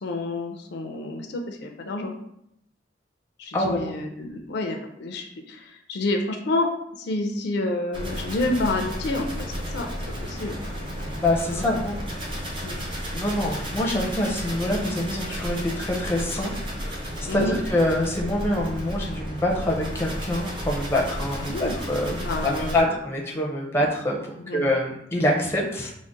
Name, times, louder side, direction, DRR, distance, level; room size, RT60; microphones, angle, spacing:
voice 1, 0.0-2.1 3.4-6.7 7.0-9.9 10.2-10.6 11.5-11.6 12.6-12.9 17.3-17.6 21.4-21.7 22.2-22.9 24.4-24.6, left 2 dB, 60° left, 3 dB, 0.4 m, -29 dB
voice 2, 3.5-3.9 11.2-12.5 13.1-16.5 16.8-22.2 22.4-24.2 24.5-25.9, left 1 dB, 15° left, -2 dB, 0.5 m, -25 dB
sound 1, 7.9-22.8, equal, 25° right, 0.7 m, -33 dB
3.5 x 2.0 x 3.8 m, 0.77 s
head